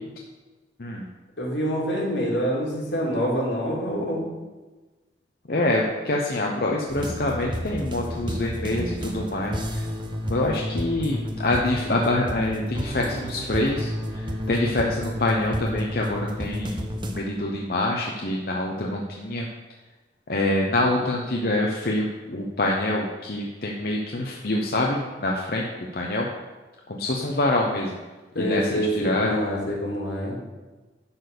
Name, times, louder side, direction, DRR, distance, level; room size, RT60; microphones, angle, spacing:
voice 1, 1.4-4.3 28.3-30.3, equal, 85° left, -3 dB, 2.9 m, -26 dB
voice 2, 5.5-9.8 10.3-19.5 20.3-26.3 26.9-28.0 28.3-29.4, left 1 dB, 55° left, -1 dB, 0.9 m, -26 dB
Entree Special Request, 6.9-17.2, equal, 25° right, 0.9 m, -31 dB
11.0 x 4.2 x 6.8 m, 1.2 s
head